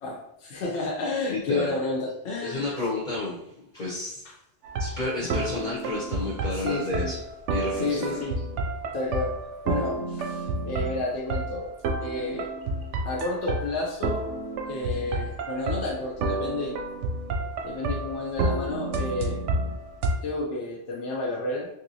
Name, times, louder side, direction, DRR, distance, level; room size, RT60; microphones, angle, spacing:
voice 1, 0.0-2.9 6.5-7.1 7.7-8.4 8.9-9.4 9.6-11.7 12.0-12.5 13.0-14.2 14.7-16.8 17.6-19.4 20.2-21.7, left 2 dB, 80° left, -3 dB, 1.0 m, -31 dB
voice 2, 1.3-1.7 2.4-3.5 3.7-4.2 4.8-7.2 7.5-8.2, left 2 dB, 45° left, -6 dB, 0.8 m, -31 dB
sound 1, 4.6-20.2, right 2 dB, 90° right, 0.9 m, -30 dB
3.4 x 2.7 x 2.6 m, 0.79 s
omnidirectional pair, 1.2 m